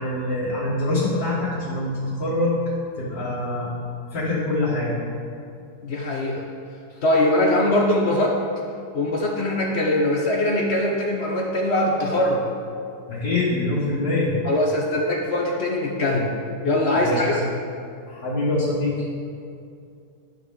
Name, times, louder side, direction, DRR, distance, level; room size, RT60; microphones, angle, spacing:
voice 1, 0.0-2.6 3.0-3.7 4.1-4.9 13.1-14.3 16.9-17.4 18.1-18.9, left 2 dB, 70° left, -12 dB, 2.3 m, -24 dB
voice 2, 5.8-6.4 7.0-8.4 8.9-12.4 14.4-16.3 16.6-17.4, left 1 dB, 50° left, 0 dB, 0.8 m, -22 dB
11.5 x 6.0 x 3.6 m, 2.5 s
omnidirectional pair, 1.9 m